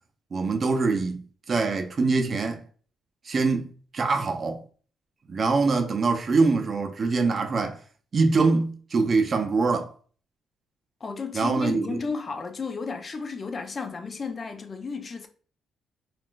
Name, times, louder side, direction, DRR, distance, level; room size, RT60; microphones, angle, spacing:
voice 1, 0.3-1.2 1.5-2.6 3.3-4.6 5.3-7.8 8.1-9.9 11.3-12.0, right 4 dB, 40° right, 0.5 m, -24 dB
voice 2, 11.0-15.3, left 4 dB, 40° left, 0.5 m, -33 dB
3.8 x 2.4 x 2.3 m
cardioid pair, 90°, 0 cm